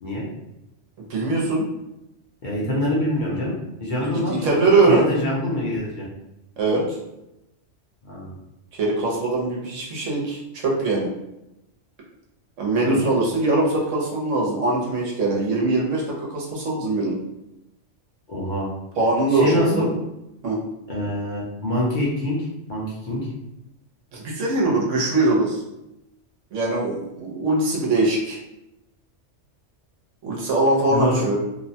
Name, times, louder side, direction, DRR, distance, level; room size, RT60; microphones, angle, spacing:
voice 1, 1.1-1.7 4.0-5.1 6.6-7.0 8.7-11.1 12.6-17.2 19.0-19.9 20.4-20.6 24.1-25.6 26.5-28.4 30.2-31.4, right 2 dB, 80° right, -3 dB, 1.1 m, -22 dB
voice 2, 2.4-4.5 4.9-6.0 8.0-8.3 12.8-12.9 18.3-18.7 19.3-19.9 20.9-23.3 30.9-31.2, left 1 dB, 45° left, -6 dB, 0.8 m, -25 dB
3.0 x 2.1 x 2.7 m, 0.90 s
omnidirectional pair, 1.3 m